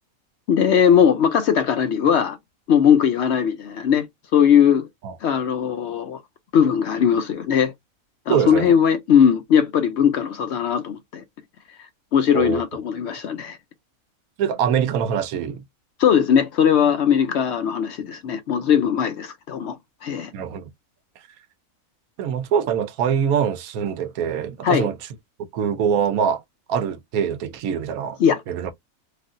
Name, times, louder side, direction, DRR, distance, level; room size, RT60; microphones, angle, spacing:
voice 1, 0.5-2.4 2.7-4.1 4.3-4.9 5.2-6.2 6.5-7.7 8.3-11.2 12.1-13.6 16.0-19.8 20.0-20.3 24.6-24.9 28.2-28.4, left 8 dB, 65° left, 0.7 m, -19 dB
voice 2, 8.3-8.7 12.3-12.6 14.4-15.6 20.3-20.7 22.2-25.0 25.5-26.4 26.7-28.2 28.5-28.7, right 8 dB, 85° right, 1.1 m, -23 dB
3.3 x 2.4 x 2.4 m
omnidirectional pair, 1.5 m